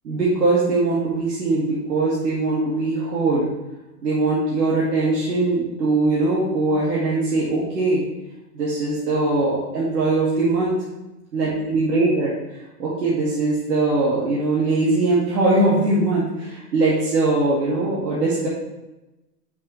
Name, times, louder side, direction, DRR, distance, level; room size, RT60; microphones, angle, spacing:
voice 1, 0.0-3.5 4.0-8.0 8.5-10.7 11.3-12.3 12.8-18.5, right 2 dB, 80° right, -8 dB, 2.4 m, -21 dB
7.5 x 6.0 x 3.3 m, 1.0 s
hypercardioid pair, 160°, 49 cm